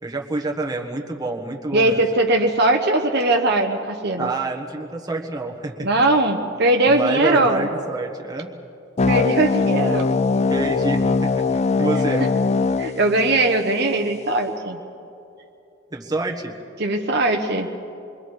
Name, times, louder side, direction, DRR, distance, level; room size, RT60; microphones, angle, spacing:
voice 1, 0.0-2.0 4.2-5.9 6.9-8.5 10.5-11.5 11.8-12.2 15.9-16.5, right 3 dB, 20° right, 0 dB, 1.4 m, -27 dB
voice 2, 1.7-4.3 5.8-7.7 9.1-10.1 12.8-14.8 16.8-17.7, right 2 dB, 55° right, 4 dB, 1.1 m, -20 dB
sound 1, 9.0-14.0, left 4 dB, 30° left, 0.4 m, -21 dB
27.5 x 22.5 x 4.8 m, 2.7 s
head